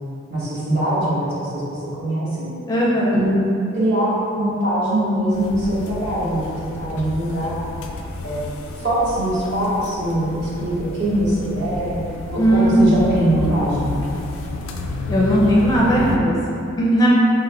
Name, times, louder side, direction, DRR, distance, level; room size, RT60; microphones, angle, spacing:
voice 1, 0.3-2.5 3.1-3.4 3.7-7.6 8.2-8.4 8.8-12.0 12.3-14.0, right 1 dB, 55° right, -9 dB, 1.1 m, -22 dB
voice 2, 2.7-3.2 12.4-13.1 15.1-17.1, right 1 dB, 20° left, -6 dB, 0.4 m, -17 dB
sound 1, 5.3-16.2, left 2 dB, 80° left, 0.4 m, -31 dB
4.6 x 2.1 x 3.2 m, 2.7 s
head